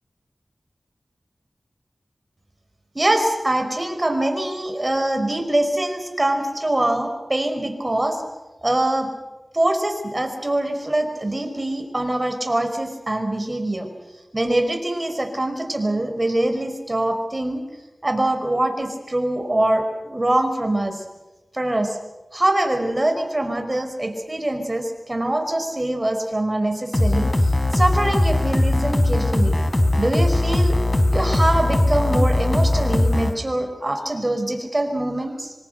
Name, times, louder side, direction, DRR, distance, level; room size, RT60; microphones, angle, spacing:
voice 1, 2.9-8.2 8.6-9.1 9.5-13.9 14.3-17.6 18.0-21.0 21.5-22.0 22.3-29.6 30.0-30.8 31.1-35.5, right 1 dB, 30° right, 6 dB, 5.1 m, -23 dB
sound 1, 26.9-33.3, left 1 dB, 25° left, 3.9 m, -19 dB
25.5 x 24.5 x 6.7 m, 1.1 s
cardioid pair, 40°, 0 cm